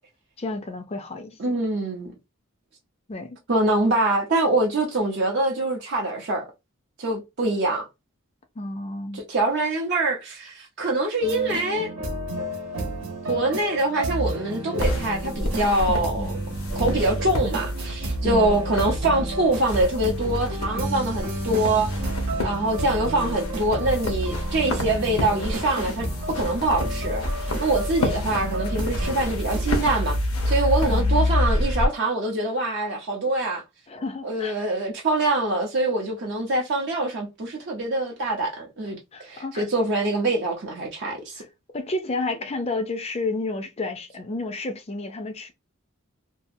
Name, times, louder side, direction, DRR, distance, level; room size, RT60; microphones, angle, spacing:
voice 1, 0.4-1.4 3.1-3.4 8.6-9.2 16.1-16.3 18.2-18.6 30.9-31.4 33.9-34.7 39.1-39.7 41.4-41.5 41.7-45.5, left 2 dB, 30° left, 0.5 m, -31 dB
voice 2, 1.4-2.1 3.5-6.5 7.0-7.9 9.1-11.9 13.3-16.3 16.7-21.9 22.4-30.2 30.5-33.6 34.2-41.4, right 2 dB, 50° right, 0.6 m, -24 dB
sound 1, 11.2-29.7, right 1 dB, 75° right, 0.9 m, -31 dB
sound 2, 14.8-31.9, left 1 dB, 80° left, 0.8 m, -28 dB
2.7 x 2.4 x 2.6 m
head